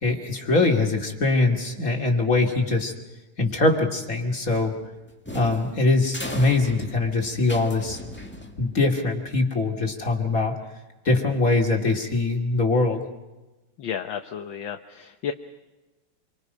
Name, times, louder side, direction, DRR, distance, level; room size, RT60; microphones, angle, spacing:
voice 1, 0.0-2.9 3.4-4.8 5.3-8.0 8.6-10.6 11.0-13.0, left 3 dB, 40° left, 2 dB, 2.8 m, -22 dB
sound 1, 4.5-9.0, left 1 dB, 5° left, 1.6 m, -38 dB
voice 2, 13.8-15.3, left 8 dB, 70° left, 5 dB, 1.7 m, -32 dB
28.5 x 24.5 x 5.6 m, 1.1 s
omnidirectional pair, 2.3 m